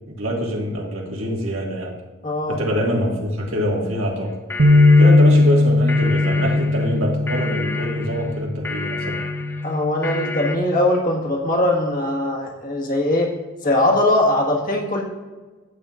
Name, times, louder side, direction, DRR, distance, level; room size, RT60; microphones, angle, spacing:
voice 1, 0.1-1.9 2.5-4.3 5.0-9.2, equal, 80° right, -2 dB, 1.9 m, -25 dB
voice 2, 2.2-2.6 9.6-13.3 13.6-15.0, left 1 dB, 40° left, 0 dB, 1.6 m, -20 dB
sound 1, 4.3-10.6, left 4 dB, 10° left, 0.4 m, -31 dB
sound 2, 4.6-10.8, left 2 dB, 60° right, 0.6 m, -18 dB
13.5 x 8.1 x 2.5 m, 1.3 s
head